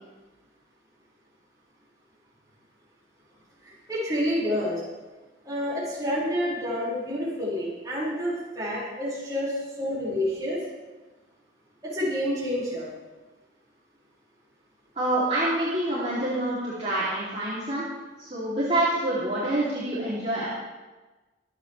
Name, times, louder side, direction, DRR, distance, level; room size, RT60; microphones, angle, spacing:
voice 1, 3.6-4.8 5.5-10.6 11.8-12.9, equal, 20° right, -8 dB, 5.4 m, -28 dB
voice 2, 14.9-17.9 18.2-20.5, right 1 dB, 35° right, -9 dB, 3.0 m, -26 dB
24.0 x 8.9 x 3.4 m, 1.2 s
head